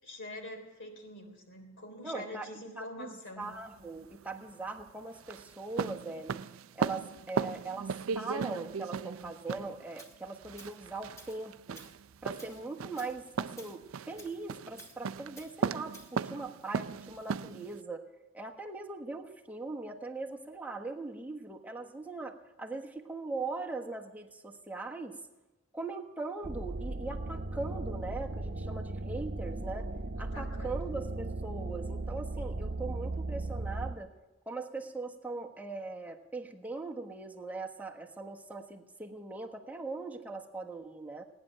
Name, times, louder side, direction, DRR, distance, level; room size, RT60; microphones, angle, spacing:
voice 1, 0.0-3.5 30.2-30.8, left 1 dB, 60° left, 3 dB, 3.6 m, -45 dB
voice 2, 2.0-2.5 2.8-6.4 6.7-7.9 8.1-11.8 12.2-18.1 18.3-25.2 25.7-29.9 30.2-34.1 34.5-41.2, right 3 dB, 10° right, 0 dB, 1.3 m, -40 dB
sound 1, 3.4-17.8, right 6 dB, 70° right, 0.4 m, -37 dB
Tools, 10.0-10.1 10.6-10.8 11.2-11.4 11.7-12.0 12.4-12.6 13.0-13.2 13.6-13.8 14.2-14.4 14.8-15.0 15.4-15.5 15.9-16.1, equal, 15° left, 2.3 m, -53 dB
sound 2, 26.4-33.9, right 2 dB, 50° right, 1.0 m, -37 dB
18.0 x 10.0 x 7.5 m, 1.1 s
head